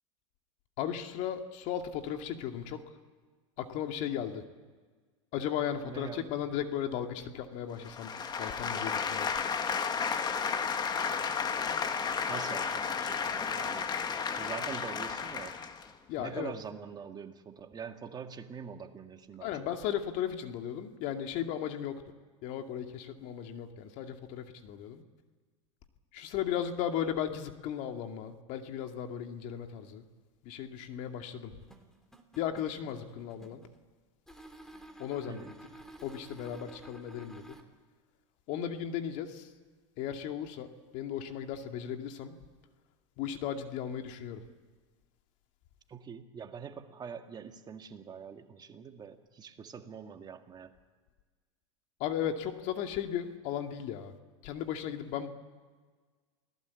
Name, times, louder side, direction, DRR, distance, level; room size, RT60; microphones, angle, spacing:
voice 1, 0.8-2.8 3.6-4.4 5.3-9.3 16.1-16.5 19.4-22.0 22.4-25.0 26.1-30.0 30.4-31.5 32.4-33.6 35.0-35.6 36.0-37.6 38.5-39.5 40.0-42.4 43.2-44.4 52.0-54.1 54.4-55.3, left 9 dB, 55° left, 5 dB, 2.3 m, -36 dB
voice 2, 5.8-6.4 12.3-13.9 14.4-15.6 16.2-19.5 35.3-35.6 45.9-50.7, right 6 dB, 25° right, 6 dB, 1.9 m, -44 dB
sound 1, 7.8-15.9, left 6 dB, 25° left, 1.8 m, -33 dB
sound 2, 31.6-33.8 34.3-37.6, right 1 dB, 5° left, 3.1 m, -51 dB
28.0 x 18.0 x 8.5 m, 1.4 s
hypercardioid pair, 105°, 16 cm